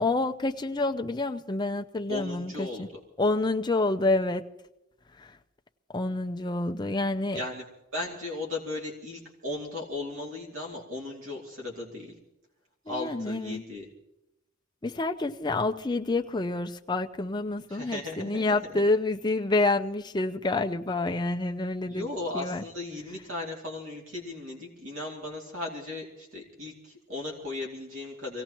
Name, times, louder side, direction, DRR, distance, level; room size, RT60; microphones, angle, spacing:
voice 1, 0.0-2.9 3.2-4.4 5.2-5.4 5.9-7.4 12.9-13.6 14.8-22.1 22.3-22.6, left 2 dB, 20° left, 5 dB, 0.5 m, -28 dB
voice 2, 2.1-2.8 7.3-7.6 7.9-12.1 12.9-13.9 17.7-18.9 21.8-28.4, left 2 dB, 75° right, -1 dB, 2.7 m, -36 dB
24.5 x 17.0 x 3.0 m, 0.90 s
head